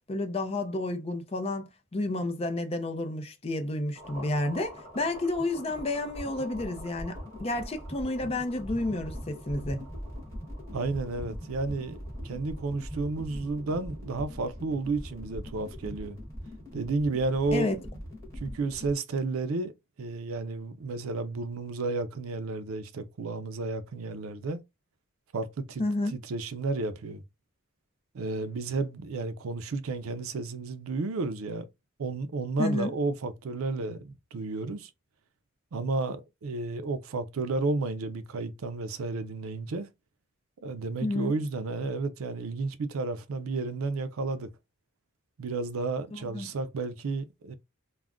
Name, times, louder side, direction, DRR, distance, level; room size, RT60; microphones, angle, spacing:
voice 1, 0.1-9.9 17.5-17.8 25.8-26.1 32.6-32.9 41.0-41.3 46.3-46.5, left 2 dB, 30° left, 0.4 m, -30 dB
sound 1, 4.0-18.9, equal, 15° left, 1.0 m, -42 dB
voice 2, 10.7-12.0 12.2-16.2 16.7-17.7 18.4-24.6 25.3-25.8 26.1-27.2 28.1-31.7 32.0-34.9 35.7-39.9 40.6-44.5 45.4-47.5, right 3 dB, 85° right, 0.4 m, -32 dB
2.4 x 2.1 x 3.5 m
head